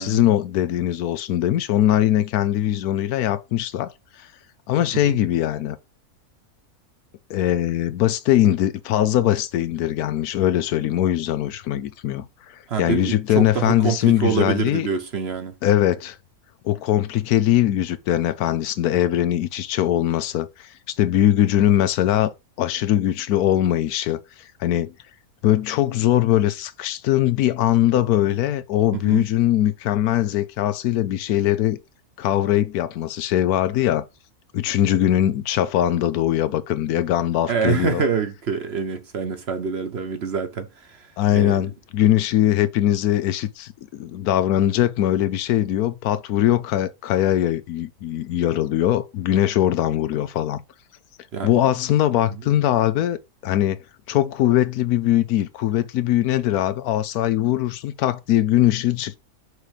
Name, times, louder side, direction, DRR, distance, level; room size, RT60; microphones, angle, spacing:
voice 1, 0.0-3.9 4.7-5.8 7.3-12.2 12.8-14.9 15.6-16.2 16.6-24.2 24.6-24.9 25.4-31.8 32.2-34.0 34.5-38.0 41.2-50.6 51.4-53.2 53.4-53.8 54.1-59.2, left 12 dB, 85° left, 1.2 m, -21 dB
voice 2, 12.7-15.5 28.9-29.3 37.5-41.1 41.3-41.6 51.3-51.6 52.3-52.4, right 6 dB, 50° right, 0.9 m, -26 dB
6.4 x 3.2 x 5.0 m
omnidirectional pair, 1.6 m